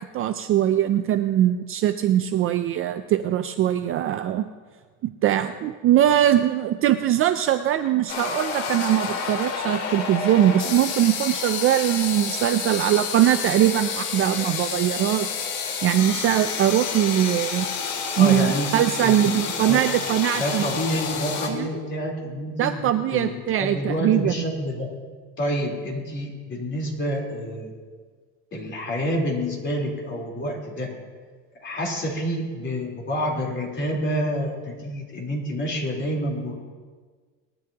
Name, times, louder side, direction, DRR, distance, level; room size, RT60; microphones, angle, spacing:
voice 1, 0.0-4.5 5.0-15.3 15.6-17.7 18.2-20.7 21.4-21.7 22.6-24.4, right 11 dB, 35° right, 9 dB, 0.4 m, -21 dB
sound 1, 8.1-21.5, left 6 dB, 90° left, 2.7 m, -29 dB
voice 2, 18.2-19.8 20.3-23.3 23.6-24.9 25.4-27.7 28.5-30.9 31.5-36.5, equal, 30° left, -2 dB, 3.7 m, -28 dB
19.5 x 13.0 x 2.9 m, 1.5 s
cardioid pair, 140°, 38 cm